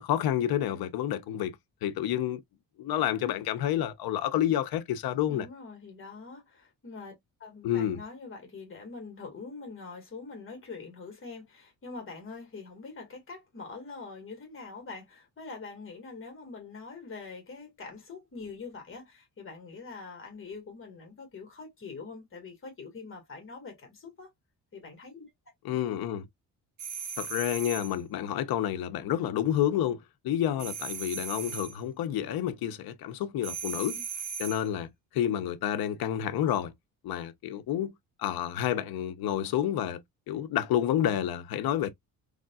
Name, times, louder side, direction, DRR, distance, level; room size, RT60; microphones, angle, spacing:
voice 1, 0.0-1.6 1.8-2.4 2.8-5.5 7.6-8.0 25.6-26.3 27.2-34.0 34.4-36.7 37.0-37.9 38.2-41.9, left 11 dB, 75° left, 0.8 m, -29 dB
voice 2, 5.3-24.3 24.7-25.3, left 4 dB, 35° left, 1.9 m, -44 dB
sound 1, 26.8-28.0 30.6-31.8 33.4-34.7, right 6 dB, 50° right, 1.7 m, -37 dB
3.8 x 3.5 x 2.3 m
cardioid pair, 135°, 37 cm